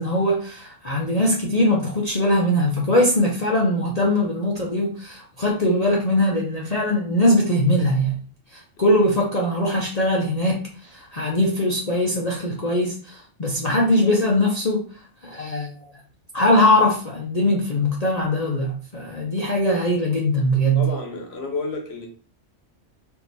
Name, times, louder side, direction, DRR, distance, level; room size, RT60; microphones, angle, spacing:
voice 1, 0.0-8.2 8.5-14.8 15.2-15.7 16.3-20.9, left 1 dB, 40° left, 0.8 m, -21 dB
voice 2, 20.7-22.1, left 3 dB, 60° left, 1.3 m, -30 dB
4.7 x 2.8 x 4.0 m
omnidirectional pair, 1.2 m